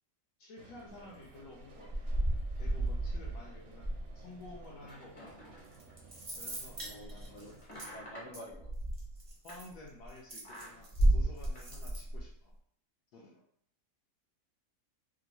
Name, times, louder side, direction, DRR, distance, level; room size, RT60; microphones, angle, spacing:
voice 1, 0.4-1.9 2.6-3.9 4.1-5.3 6.4-7.4 9.4-12.5 13.1-13.4, left 2 dB, 75° left, -3 dB, 1.1 m, -52 dB
sound 1, 0.6-7.6, right 3 dB, 70° right, 0.8 m, -57 dB
sound 2, 1.6-6.1 6.3-10.1 10.4-12.3, right 1 dB, 30° left, 0.7 m, -34 dB
sound 3, 5.6-7.9 8.3-8.4 8.9-11.0 11.4-12.0, right 2 dB, 35° right, 0.5 m, -46 dB
voice 2, 6.8-7.5 7.9-8.7, equal, 50° left, -4 dB, 1.1 m, -49 dB
3.1 x 2.4 x 2.9 m, 0.64 s
omnidirectional pair, 1.7 m